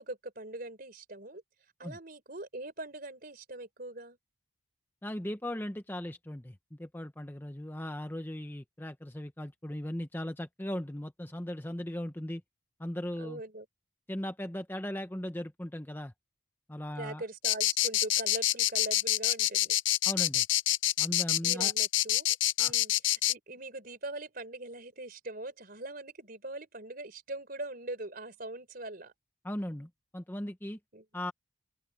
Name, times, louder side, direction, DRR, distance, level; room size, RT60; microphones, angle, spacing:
voice 1, 0.0-1.4 1.8-4.2 13.2-13.7 17.0-19.8 21.4-22.3 22.6-29.1 30.9-31.0, right 2 dB, 45° right, 4.5 m, -42 dB
voice 2, 5.0-12.4 12.8-13.4 14.1-16.1 16.7-17.2 20.0-20.5 21.0-21.7 22.6-22.7 29.4-30.8 31.1-31.3, left 1 dB, 10° left, 0.8 m, -38 dB
sound 1, 17.4-23.3, left 14 dB, 65° left, 0.6 m, -26 dB
open air
head